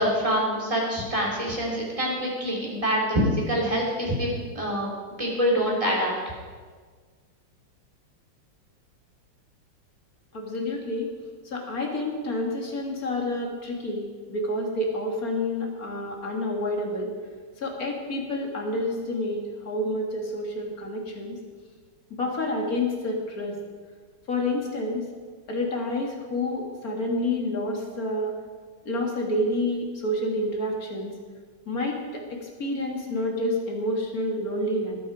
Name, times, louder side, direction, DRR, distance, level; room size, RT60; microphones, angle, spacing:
voice 1, 0.0-4.3 4.5-4.9 5.2-6.1, equal, 15° right, -3 dB, 3.5 m, -25 dB
voice 2, 10.3-11.1 11.5-17.1 17.6-21.4 22.1-23.6 24.3-25.1 25.5-28.3 28.9-31.1 31.7-35.0, left 1 dB, 40° left, 1 dB, 2.6 m, -29 dB
20.5 x 9.3 x 5.0 m, 1.5 s
omnidirectional pair, 2.4 m